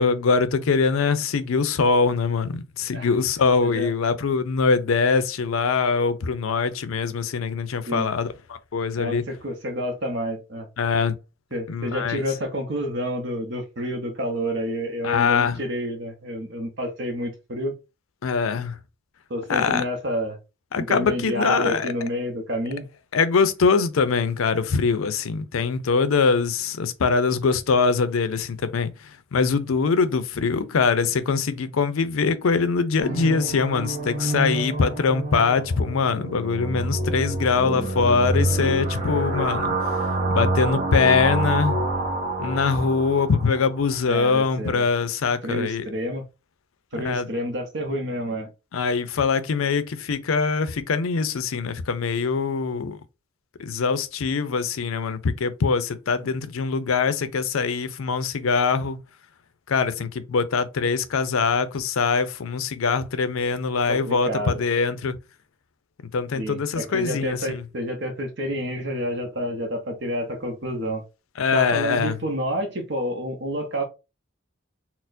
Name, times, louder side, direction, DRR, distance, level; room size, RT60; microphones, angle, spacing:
voice 1, 0.0-9.2 10.8-11.1 11.7-12.2 15.0-15.6 18.2-18.8 19.5-19.8 20.7-21.9 23.1-28.9 29.3-39.7 40.3-41.8 42.4-45.9 47.0-47.3 48.7-53.0 53.6-59.0 59.7-65.1 66.1-67.6 71.4-72.1, left 5 dB, 80° left, 0.5 m, -23 dB
voice 2, 9.0-10.7 11.5-17.7 19.3-20.4 20.8-22.8 37.6-37.9 44.1-44.9 45.4-46.2 46.9-48.5 63.9-64.6 66.3-71.0 71.5-73.8, equal, 55° right, 0.7 m, -29 dB
sound 1, 33.0-43.8, right 2 dB, 35° right, 0.9 m, -27 dB
4.2 x 2.0 x 2.5 m
head